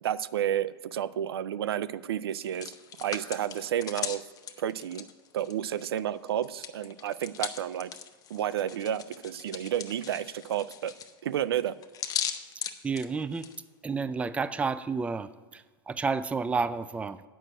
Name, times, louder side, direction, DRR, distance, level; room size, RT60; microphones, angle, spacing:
voice 1, 0.0-2.7 3.0-4.2 4.6-5.1 5.3-7.9 8.3-10.9 11.2-11.8, right 10 dB, 90° right, 17 dB, 0.4 m, -31 dB
Hands, 2.3-6.0 6.3-13.6, left 8 dB, 30° left, 0.7 m, -38 dB
voice 2, 12.6-13.5 13.8-17.2, right 4 dB, 10° right, 15 dB, 0.3 m, -31 dB
8.0 x 6.2 x 7.6 m, 1.3 s
hypercardioid pair, 115°, 12 cm